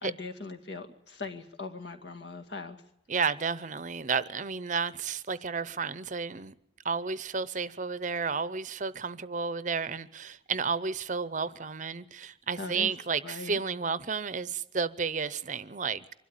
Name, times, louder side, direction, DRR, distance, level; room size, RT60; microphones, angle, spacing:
voice 1, 0.0-2.8 12.6-12.9 13.2-13.6, left 3 dB, 65° left, 2.2 m, -40 dB
voice 2, 3.1-6.5 6.8-16.1, right 5 dB, 40° right, 0.7 m, -32 dB
24.0 x 12.5 x 9.0 m
head